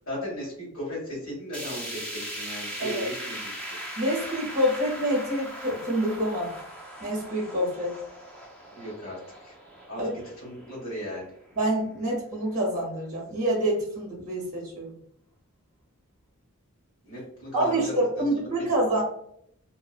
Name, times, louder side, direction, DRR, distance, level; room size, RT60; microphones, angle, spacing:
voice 1, 0.1-3.5 8.7-9.2 9.4-9.5 9.9-10.0 10.4-11.3 17.0-18.2, equal, 65° left, -5 dB, 1.5 m, -36 dB
sound 1, 1.5-11.7 12.1-12.2 12.6-12.7 13.5-13.6, equal, 5° left, 0.4 m, -39 dB
voice 2, 4.0-6.5 7.0-8.0 10.0-10.1 11.6-15.0 17.5-19.0, right 1 dB, 35° right, -2 dB, 0.7 m, -27 dB
2.7 x 2.0 x 2.4 m, 0.69 s
head